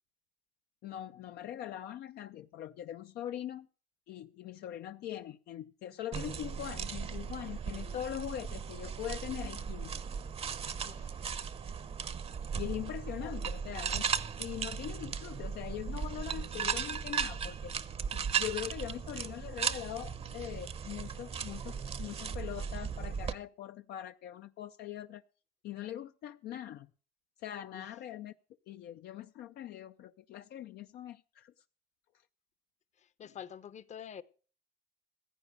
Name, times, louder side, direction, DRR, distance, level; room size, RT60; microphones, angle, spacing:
voice 1, 0.8-3.7 4.1-10.0 12.5-14.0 14.4-17.7 18.1-25.2 25.6-26.9 27.4-28.3 28.7-31.5, left 12 dB, 70° left, 8 dB, 0.5 m, -42 dB
sound 1, 6.1-23.3, right 6 dB, 35° right, 0.7 m, -37 dB
voice 2, 7.7-8.1 10.9-11.3 13.2-14.0 27.7-27.9 33.0-34.2, left 9 dB, 45° left, 17 dB, 0.8 m, -49 dB
15.5 x 8.7 x 6.6 m, 0.41 s
cardioid pair, 110°, 17 cm